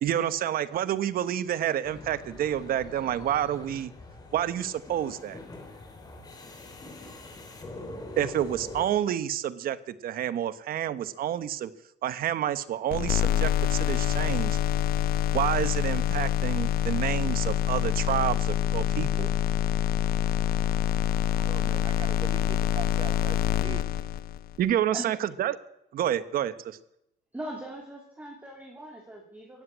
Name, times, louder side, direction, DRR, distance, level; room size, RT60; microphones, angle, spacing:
voice 1, 0.0-3.9 4.3-5.4 8.2-11.7 12.0-14.6 15.3-19.3 24.6-25.5 25.9-26.8, right 11 dB, 60° right, 13 dB, 1.1 m, -29 dB
sound 1, 1.8-8.9, left 2 dB, 25° left, 3.5 m, -43 dB
sound 2, 12.9-24.6, left 11 dB, 60° left, 0.8 m, -26 dB
voice 2, 21.2-23.8, right 6 dB, 30° right, 14 dB, 0.9 m, -41 dB
voice 3, 27.3-29.6, right 1 dB, 10° right, -1 dB, 3.2 m, -40 dB
16.0 x 7.9 x 9.6 m, 0.84 s
cardioid pair, 110°, 17 cm